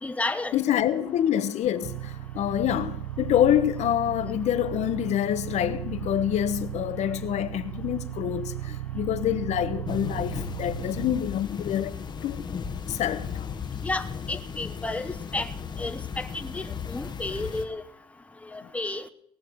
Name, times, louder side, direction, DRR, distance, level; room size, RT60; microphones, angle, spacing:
voice 1, 0.0-0.6 13.8-15.5 15.8-17.8 18.5-19.0, left 2 dB, 10° left, 1.0 m, -32 dB
voice 2, 0.5-11.9 12.2-12.4 12.9-13.5, left 11 dB, 60° left, 1.1 m, -26 dB
sound 1, 1.8-11.2, right 15 dB, 80° right, 0.6 m, -36 dB
sound 2, 9.8-17.6, left 6 dB, 35° left, 1.2 m, -36 dB
18.5 x 6.5 x 7.9 m
cardioid pair, 95°, 13 cm